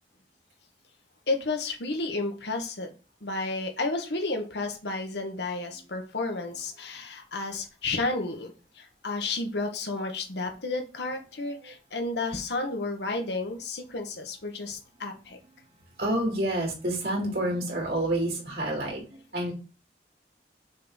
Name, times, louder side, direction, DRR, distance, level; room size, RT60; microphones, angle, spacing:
voice 1, 1.3-2.9 3.2-15.4, left 3 dB, 75° left, 4 dB, 1.3 m, -32 dB
voice 2, 16.0-19.5, right 1 dB, 60° right, -1 dB, 2.8 m, -28 dB
6.4 x 3.7 x 4.0 m, 0.34 s
head